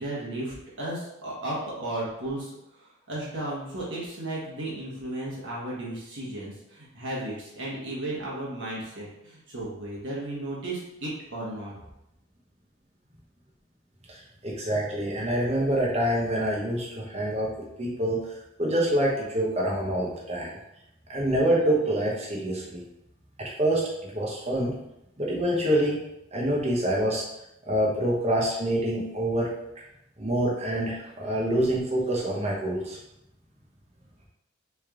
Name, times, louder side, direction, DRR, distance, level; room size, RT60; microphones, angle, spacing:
voice 1, 0.0-11.7, right 1 dB, 60° right, -6 dB, 1.3 m, -34 dB
voice 2, 14.4-17.5 17.8-18.2 18.6-20.5 21.1-22.8 23.6-23.8 24.1-24.7 25.2-26.0 26.3-27.2 27.7-29.5 30.2-33.0, right 1 dB, 30° right, -4 dB, 1.1 m, -26 dB
4.2 x 3.4 x 3.7 m, 0.83 s
head